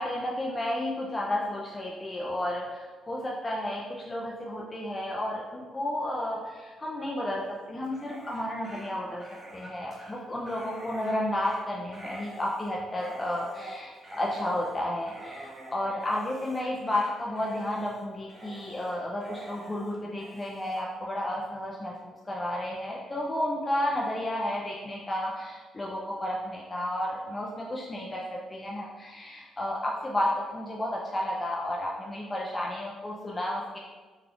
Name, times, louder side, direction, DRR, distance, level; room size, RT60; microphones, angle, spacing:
voice 1, 0.0-9.3 9.5-33.8, left 1 dB, 25° left, -3 dB, 0.4 m, -32 dB
Dog, 7.8-20.8, right 1 dB, 15° right, 0.8 m, -46 dB
3.6 x 2.3 x 3.4 m, 1.4 s
cardioid pair, 90°, 0 cm